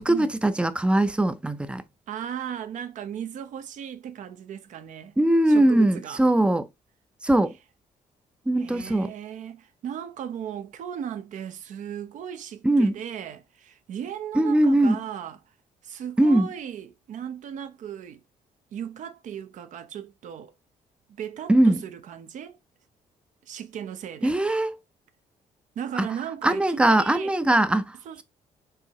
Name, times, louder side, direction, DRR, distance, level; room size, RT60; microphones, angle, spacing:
voice 1, 0.0-1.8 5.2-6.7 7.2-7.5 8.5-9.1 12.6-12.9 14.3-15.0 16.2-16.5 21.5-21.8 24.2-24.8 26.0-26.1 26.4-28.0, right 1 dB, 10° right, 0.5 m, -21 dB
voice 2, 2.1-5.2 5.5-6.2 8.6-15.4 15.8-18.2 18.7-20.5 21.1-22.6 23.4-24.3 25.8-27.3 28.1-28.2, right 9 dB, 65° right, 0.8 m, -36 dB
4.8 x 3.6 x 2.9 m
cardioid pair, 120°, 14 cm